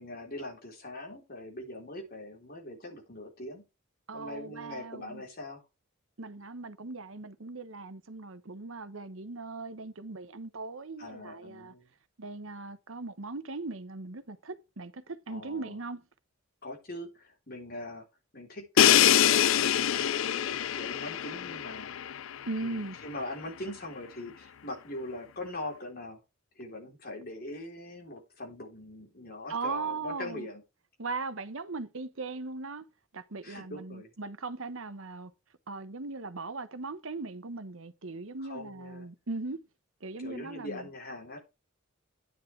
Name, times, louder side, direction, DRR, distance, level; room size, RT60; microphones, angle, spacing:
voice 1, 0.0-3.6 4.1-5.6 11.0-11.9 15.3-15.8 16.6-18.1 18.3-22.1 22.6-26.2 26.6-30.6 33.4-34.1 38.5-39.1 40.2-41.4, left 1 dB, 45° left, 3.8 m, -41 dB
voice 2, 4.1-5.2 6.2-11.7 12.2-16.0 22.5-23.0 29.5-30.5 31.0-32.9 33.1-35.3 35.7-39.6 40.0-40.9, right 3 dB, 75° right, 1.1 m, -39 dB
Crash cymbal, 18.8-22.6, left 10 dB, 70° left, 0.4 m, -24 dB
10.5 x 9.5 x 3.4 m
head